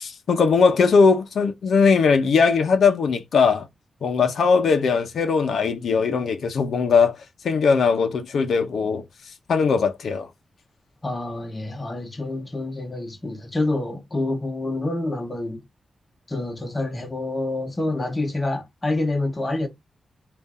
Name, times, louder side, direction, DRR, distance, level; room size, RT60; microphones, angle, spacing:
voice 1, 0.0-3.7 4.0-7.2 7.4-9.0 9.5-10.3, left 5 dB, 70° left, 0.7 m, -19 dB
voice 2, 11.0-15.6 16.3-19.7, left 2 dB, 20° left, 0.9 m, -27 dB
3.7 x 2.5 x 4.1 m
wide cardioid pair, 165°, 0 cm